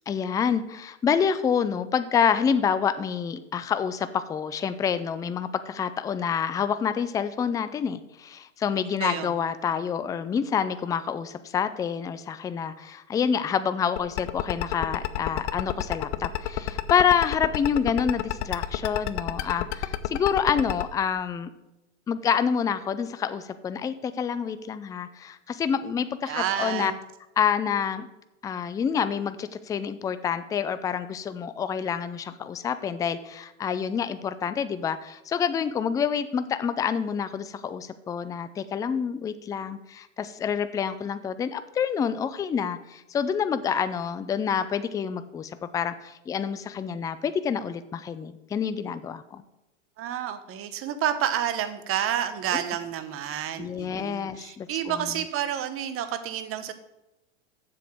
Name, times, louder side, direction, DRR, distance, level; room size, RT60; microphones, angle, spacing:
voice 1, 0.1-21.5 22.1-26.9 27.4-28.1 28.4-49.4 52.5-52.6 53.6-55.0, left 7 dB, 10° left, 13 dB, 0.3 m, -27 dB
voice 2, 9.0-9.4 26.3-27.0 50.0-56.7, right 10 dB, 35° right, 11 dB, 1.1 m, -30 dB
sound 1, 14.0-20.8, left 14 dB, 60° left, 0.7 m, -28 dB
7.7 x 7.0 x 6.2 m, 0.97 s
hypercardioid pair, 95°, 38 cm